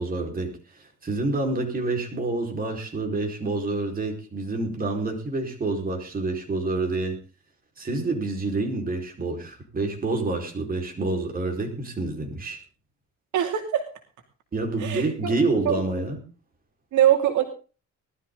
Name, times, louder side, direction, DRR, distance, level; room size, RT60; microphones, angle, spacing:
voice 1, 0.0-7.2 7.8-12.6 14.5-16.2, right 2 dB, 30° right, 2 dB, 4.9 m, -28 dB
voice 2, 13.3-13.8 14.8-15.3 15.7-15.8 16.9-17.4, right 11 dB, 80° right, 5 dB, 2.8 m, -22 dB
20.0 x 13.0 x 4.0 m, 0.36 s
cardioid pair, 140°, 30 cm